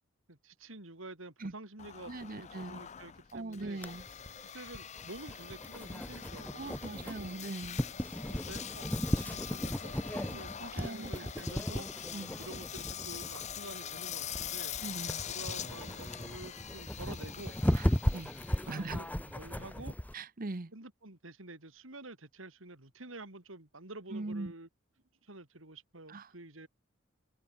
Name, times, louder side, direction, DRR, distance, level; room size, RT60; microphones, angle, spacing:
voice 1, 0.3-3.8 4.4-7.4 8.2-8.9 9.1-14.7 15.3-17.5 18.7-20.0 20.7-24.7 25.2-26.7, right 2 dB, 85° right, 3.7 m, -49 dB
Engine, 1.8-20.2, left 9 dB, 35° left, 0.6 m, -44 dB
voice 2, 2.1-2.8 3.3-4.0 6.5-7.8 10.3-11.3 12.1-12.4 14.8-15.2 17.8-17.9 18.1-18.3 18.7-19.0 20.1-20.7 24.1-24.5 26.1-26.3, right 2 dB, 45° right, 0.9 m, -41 dB
sound 1, 3.8-20.1, equal, 10° left, 0.8 m, -36 dB
head